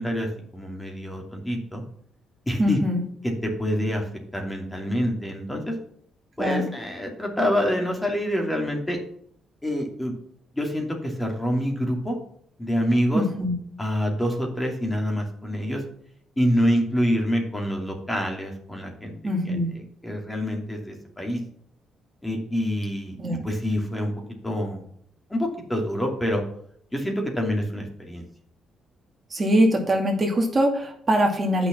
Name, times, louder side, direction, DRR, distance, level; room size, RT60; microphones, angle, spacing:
voice 1, 0.0-1.8 2.5-2.8 3.2-4.0 4.3-5.8 6.4-9.0 9.6-10.1 10.6-12.2 12.6-13.2 13.8-15.8 16.4-19.1 19.5-19.6 20.0-21.4 22.2-23.2 23.4-24.1 24.4-24.8 25.3-26.4 26.9-28.2, equal, 10° left, 1 dB, 2.6 m, -26 dB
voice 2, 2.6-3.0 6.4-6.7 13.1-13.5 19.2-19.7 23.2-23.4 29.3-31.7, equal, 35° right, 1 dB, 2.4 m, -22 dB
8.4 x 6.1 x 6.0 m, 0.66 s
cardioid pair, 90°, 0 cm